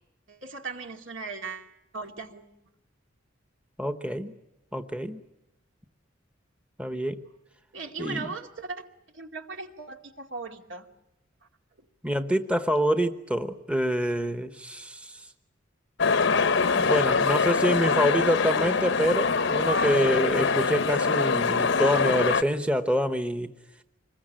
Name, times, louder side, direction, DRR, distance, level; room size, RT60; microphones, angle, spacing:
voice 1, 0.3-2.5 7.7-8.9 9.1-10.9, right 4 dB, 70° right, 3 dB, 2.5 m, -38 dB
voice 2, 3.8-4.3 4.7-5.2 6.8-7.2 8.0-8.3 12.0-15.3 16.7-23.5, equal, 5° right, 8 dB, 1.0 m, -26 dB
sound 1, 16.0-22.4, left 4 dB, 65° left, 0.8 m, -24 dB
25.5 x 22.0 x 8.8 m, 0.90 s
head